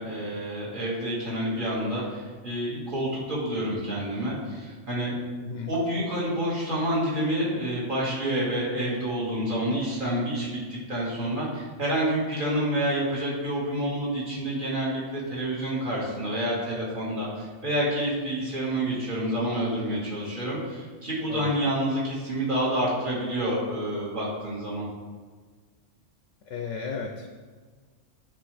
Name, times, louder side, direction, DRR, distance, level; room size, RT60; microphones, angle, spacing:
voice 1, 0.0-5.1 5.4-24.9, right 1 dB, 40° right, -7 dB, 2.0 m, -28 dB
voice 2, 26.5-27.3, left 5 dB, 75° left, 2 dB, 1.0 m, -34 dB
9.6 x 3.5 x 3.4 m, 1.5 s
omnidirectional pair, 1.3 m